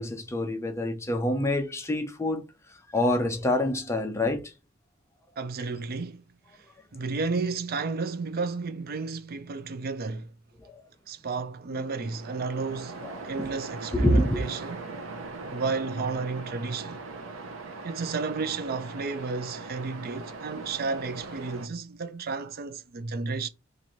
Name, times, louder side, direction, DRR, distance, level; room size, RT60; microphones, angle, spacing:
voice 1, 0.0-2.4 2.9-4.5 13.0-13.1 13.9-14.4, left 1 dB, 15° left, 0.6 m, -26 dB
voice 2, 5.4-6.2 6.5-6.7 6.9-10.3 11.1-14.9 15.5-17.0 17.8-23.5, right 4 dB, 50° right, 0.4 m, -32 dB
Waves surf, 11.8-21.7, right 3 dB, 85° right, 0.7 m, -40 dB
3.0 x 2.6 x 4.0 m
head